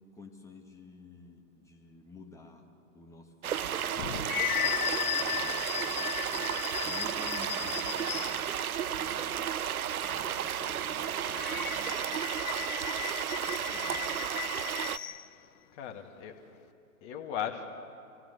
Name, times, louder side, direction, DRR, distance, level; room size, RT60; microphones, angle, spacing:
voice 1, 0.1-8.7 8.9-9.6 10.0-12.5 13.4-14.3, left 2 dB, 5° left, 2 dB, 1.9 m, -51 dB
sound 1, 3.4-15.0, right 9 dB, 85° right, 0.7 m, -33 dB
sound 2, 3.8-8.6 11.3-15.3, left 11 dB, 75° left, 0.8 m, -35 dB
voice 2, 15.7-16.3 17.0-17.7, left 8 dB, 30° left, 5 dB, 2.0 m, -37 dB
23.5 x 16.5 x 8.2 m, 2.6 s
hypercardioid pair, 125°, 43 cm